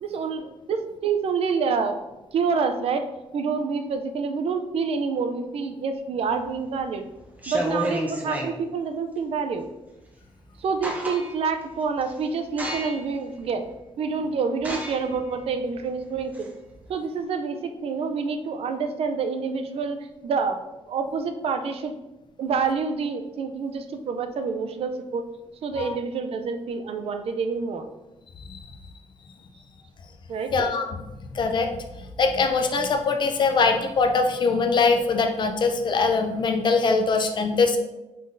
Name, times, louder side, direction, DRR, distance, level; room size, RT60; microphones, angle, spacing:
voice 1, 0.0-2.0 2.3-3.0 3.3-7.0 7.5-9.7 10.6-13.6 14.0-16.5 16.9-20.0 20.2-20.6 20.9-21.9 22.4-25.2 25.6-27.9 30.3-30.5, right 5 dB, 60° right, 7 dB, 0.4 m, -27 dB
sound 1, 6.4-6.8 7.3-8.6 10.2-10.3 10.6-11.5 12.0-12.2 12.6-13.2 13.7-13.8 14.6-16.9, right 1 dB, 15° right, 0.7 m, -31 dB
voice 2, 30.5-30.9 31.3-31.7 32.2-37.8, left 4 dB, 40° left, 5 dB, 0.5 m, -22 dB
5.3 x 3.9 x 2.6 m, 1.0 s
wide cardioid pair, 155°, 12 cm